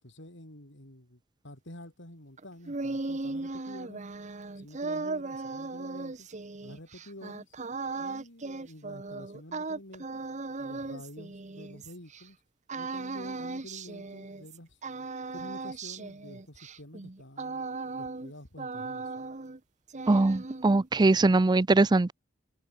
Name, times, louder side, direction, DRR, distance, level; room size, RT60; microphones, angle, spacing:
voice 1, 0.0-4.0 4.5-6.3 6.6-7.5 7.9-10.2 10.6-12.4 12.7-14.8 15.3-19.3, left 1 dB, 65° left, 6.0 m, -49 dB
sound 1, 2.4-12.2 12.7-14.6 14.8-18.3 18.6-19.6 19.9-20.9, right 3 dB, 40° right, 1.1 m, -37 dB
voice 2, 20.1-22.1, right 2 dB, 20° right, 0.4 m, -22 dB
head